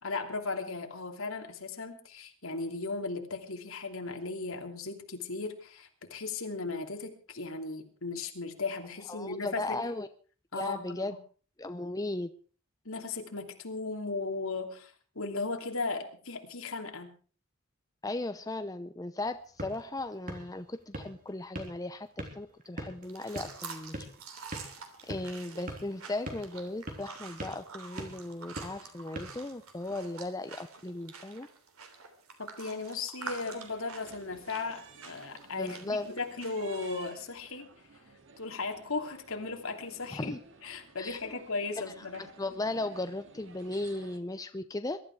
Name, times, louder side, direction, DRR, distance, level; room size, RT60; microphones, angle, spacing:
voice 1, 0.0-9.8 10.5-11.2 12.8-17.1 32.4-37.7 38.4-40.3 40.6-42.2, left 3 dB, 70° left, 4 dB, 2.9 m, -36 dB
voice 2, 9.1-10.1 10.6-11.2 11.6-12.3 18.0-24.0 25.0-31.5 35.5-36.1 40.1-40.4 41.0-41.2 42.0-42.1 42.4-45.0, left 2 dB, 15° left, 9 dB, 0.7 m, -36 dB
sound 1, 19.2-30.1, right 1 dB, 40° right, 3.5 m, -45 dB
sound 2, 23.0-37.0, right 5 dB, 75° right, 3.3 m, -47 dB
sound 3, 33.2-44.2, right 3 dB, 60° right, 2.2 m, -54 dB
22.0 x 12.5 x 4.7 m, 0.40 s
head